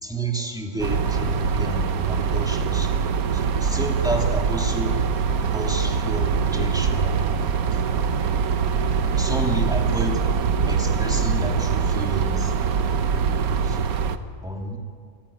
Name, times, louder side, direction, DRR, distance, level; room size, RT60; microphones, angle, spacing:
voice 1, 0.0-2.9 3.3-5.0 5.5-7.4 9.2-10.2 10.7-12.5 13.2-13.8 14.4-14.8, right 1 dB, 5° right, 2 dB, 2.4 m, -30 dB
sound 1, 0.8-14.2, right 6 dB, 80° right, 1.4 m, -23 dB
24.5 x 15.5 x 10.0 m, 2.1 s
omnidirectional pair, 1.5 m